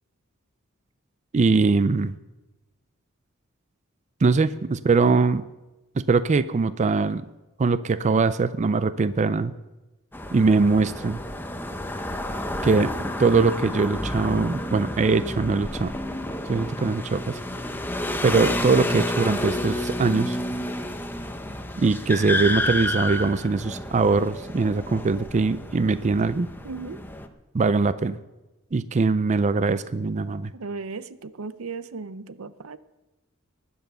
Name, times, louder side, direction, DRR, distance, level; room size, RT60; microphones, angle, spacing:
voice 1, 1.3-2.1 4.2-5.4 6.0-7.2 7.6-9.5 10.3-11.2 12.6-15.9 16.5-17.4 18.2-20.4 21.8-26.5 27.5-28.2 28.7-30.5, right 4 dB, 35° right, 14 dB, 0.4 m, -22 dB
sound 1, 10.1-27.3, left 1 dB, 10° left, 0.8 m, -30 dB
voice 2, 26.6-27.0 30.5-32.8, right 4 dB, 85° right, 14 dB, 0.7 m, -36 dB
19.5 x 7.1 x 6.9 m, 1.1 s
head